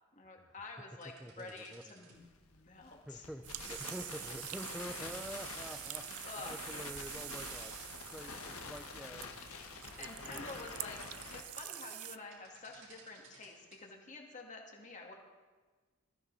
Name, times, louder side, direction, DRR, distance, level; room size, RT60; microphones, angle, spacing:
voice 1, 0.2-3.3 6.2-6.6 10.0-15.1, left 3 dB, 35° left, 1 dB, 2.2 m, -49 dB
sound 1, 1.0-2.2 3.5-3.9 5.3-5.9 7.3-7.9 8.4-8.6 9.2-10.8 12.0-12.1 12.3-13.8, right 4 dB, 70° right, 4.7 m, -58 dB
voice 2, 1.2-2.3 3.1-6.0 6.4-7.8 8.1-9.3 10.0-10.7, equal, ahead, 4 dB, 0.5 m, -47 dB
Crackle, 2.1-11.4, left 4 dB, 90° left, 1.6 m, -47 dB
sound 2, 3.4-12.2, right 15 dB, 90° right, 0.5 m, -46 dB
20.0 x 14.0 x 4.1 m, 1.3 s
head